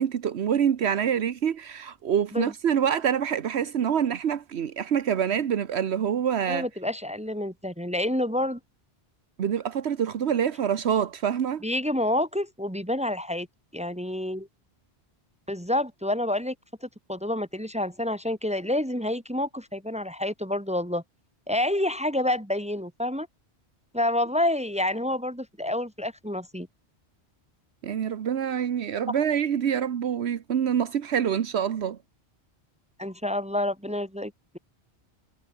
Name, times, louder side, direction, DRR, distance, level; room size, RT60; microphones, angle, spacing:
voice 1, 0.0-6.7 9.4-11.6 27.8-32.0, right 8 dB, 80° right, 1.2 m, -26 dB
voice 2, 6.5-8.6 11.6-13.5 13.7-14.5 15.5-16.5 16.8-21.0 21.5-23.3 23.9-26.7 29.1-29.2 33.0-34.6, left 1 dB, 5° right, 1.2 m, -28 dB
omnidirectional pair, 1.1 m